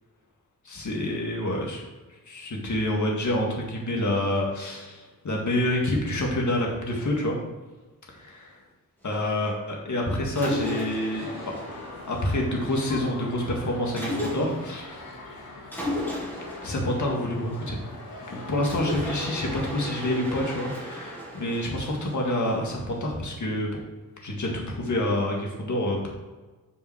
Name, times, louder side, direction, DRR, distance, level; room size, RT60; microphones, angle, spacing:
voice 1, 0.7-1.8 2.3-7.4 8.2-8.6 9.0-11.3 12.1-15.0 16.6-17.8 18.3-23.8 24.2-26.1, left 1 dB, 55° left, 0 dB, 1.9 m, -27 dB
Mechanisms, 10.4-12.8 14.0-14.8 15.7-18.0 18.6-22.8, left 1 dB, 5° left, 1.9 m, -35 dB
sound 1, 11.1-19.6, left 2 dB, 85° left, 2.2 m, -42 dB
6.8 x 5.2 x 6.1 m, 1.3 s
wide cardioid pair, 175°, 35 cm